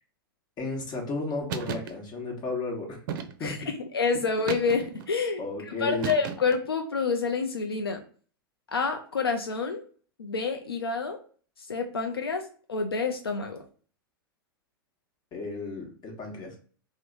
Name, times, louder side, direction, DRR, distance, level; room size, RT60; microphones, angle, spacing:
voice 1, 0.6-3.0 3.4-3.6 5.4-6.2 15.3-16.5, left 3 dB, 35° left, 1 dB, 1.1 m, -33 dB
sound 1, 1.5-1.9 3.1-3.6 4.5-5.1 6.0-6.7, right 7 dB, 60° right, 0.4 m, -34 dB
voice 2, 3.4-8.0 8.7-9.8 10.2-11.2 11.6-13.6, left 4 dB, 85° left, 5 dB, 0.4 m, -28 dB
3.0 x 2.0 x 3.7 m, 0.43 s
figure-of-eight pair, 90°, 12 cm